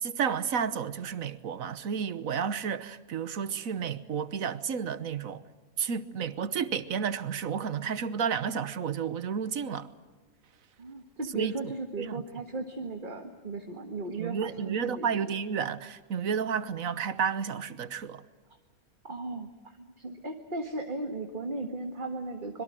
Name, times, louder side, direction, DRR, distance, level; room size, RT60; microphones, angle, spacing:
voice 1, 0.0-5.4 5.8-9.9 11.3-11.7 12.0-12.2 14.1-18.2, right 7 dB, 70° right, 1.5 m, -31 dB
voice 2, 10.8-15.4 19.0-22.6, right 3 dB, 35° right, 1.7 m, -36 dB
25.5 x 22.5 x 7.6 m
omnidirectional pair, 1.5 m